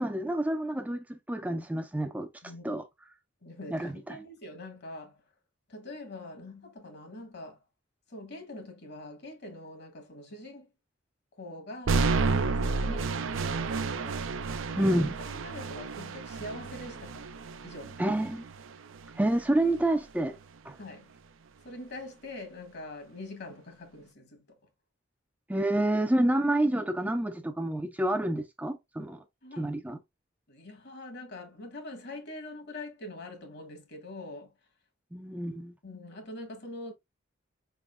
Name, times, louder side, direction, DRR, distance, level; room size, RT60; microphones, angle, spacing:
voice 1, 0.0-2.3 2.6-2.8 3.7-4.2 14.8-15.2 18.0-18.4 19.2-20.4 20.6-20.8 25.5-29.2 29.6-30.0 35.1-35.7, right 1 dB, 10° right, 0.4 m, -28 dB
voice 2, 2.4-2.8 3.4-5.2 5.7-7.6 8.1-10.7 11.3-14.2 15.2-17.3 17.6-18.0 20.8-21.1 21.6-24.6 29.4-29.7 30.5-34.5 35.8-36.9, left 1 dB, 60° left, 1.4 m, -44 dB
sound 1, 11.9-19.9, right 4 dB, 85° right, 0.5 m, -31 dB
5.0 x 3.6 x 2.3 m
head